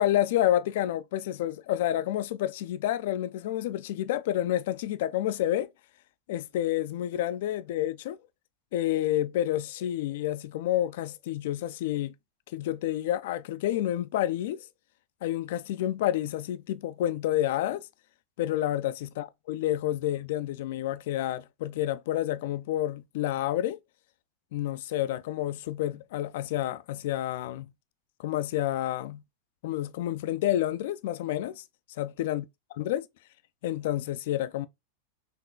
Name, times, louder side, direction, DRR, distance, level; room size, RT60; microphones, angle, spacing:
voice 1, 0.0-5.7 6.3-8.2 8.7-12.1 12.5-14.6 15.2-17.8 18.4-23.8 24.5-27.7 28.2-29.2 29.6-31.6 32.0-32.4 32.8-33.1 33.6-34.7, left 13 dB, 55° left, 0.3 m, -29 dB
4.3 x 3.0 x 2.2 m
figure-of-eight pair, 90°, 0 cm